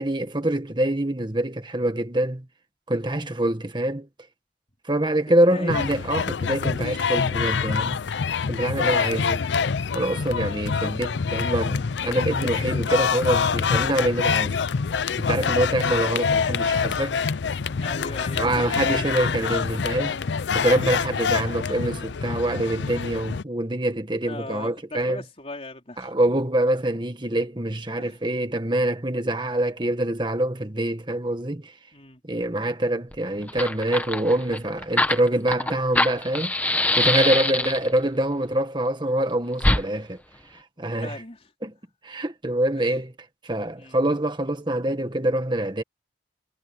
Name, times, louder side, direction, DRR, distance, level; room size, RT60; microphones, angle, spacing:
voice 1, 0.0-2.5 2.9-4.1 4.9-8.0 8.5-9.4 9.9-14.5 15.2-17.2 18.4-20.2 20.5-25.2 26.0-31.7 32.2-36.5 37.0-40.2 40.8-41.2 41.6-41.7 42.0-43.1 43.4-45.8, right 1 dB, 25° right, 1.7 m, -25 dB
sound 1, 5.7-23.4, left 6 dB, 75° left, 0.5 m, -26 dB
voice 2, 15.4-15.8 17.8-18.8 24.2-26.1 28.0-28.2 31.9-32.2 37.2-37.8 41.0-41.5 42.8-42.9 43.7-44.0, left 2 dB, 35° left, 4.1 m, -39 dB
Fire, 33.1-33.2 33.4-38.0 39.6-39.8, left 2 dB, 10° left, 1.2 m, -23 dB
head